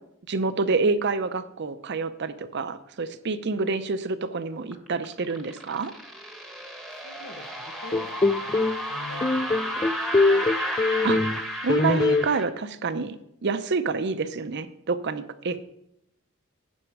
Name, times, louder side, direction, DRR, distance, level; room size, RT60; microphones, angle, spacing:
voice 1, 0.3-5.9 11.0-11.2 11.6-15.6, right 4 dB, 50° right, 11 dB, 0.6 m, -27 dB
sound 1, 4.7-12.4, equal, ahead, 1.1 m, -33 dB
voice 2, 7.0-8.0 8.4-10.0 15.5-15.6, left 2 dB, 85° left, 4 dB, 1.6 m, -45 dB
sound 2, 7.9-8.8 9.2-11.4 11.7-12.3, left 3 dB, 20° left, 0.3 m, -22 dB
10.0 x 6.3 x 4.8 m, 0.77 s
head